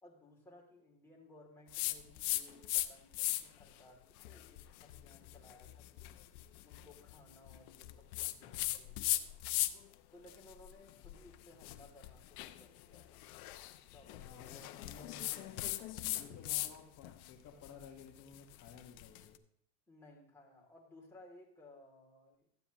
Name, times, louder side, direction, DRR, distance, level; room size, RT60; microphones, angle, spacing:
voice 1, 0.0-6.2 6.6-9.3 10.1-13.2 13.9-16.0 19.9-22.6, left 1 dB, 5° left, -3 dB, 2.6 m, -60 dB
sound 1, 1.7-2.9 3.1-3.6 4.2-9.9 10.3-16.7 17.0-19.2, left 16 dB, 60° left, 0.8 m, -39 dB
voice 2, 14.2-15.5 16.1-19.4, left 5 dB, 30° left, 0 dB, 1.3 m, -55 dB
13.5 x 9.0 x 2.9 m, 0.69 s
supercardioid pair, 130°, 49 cm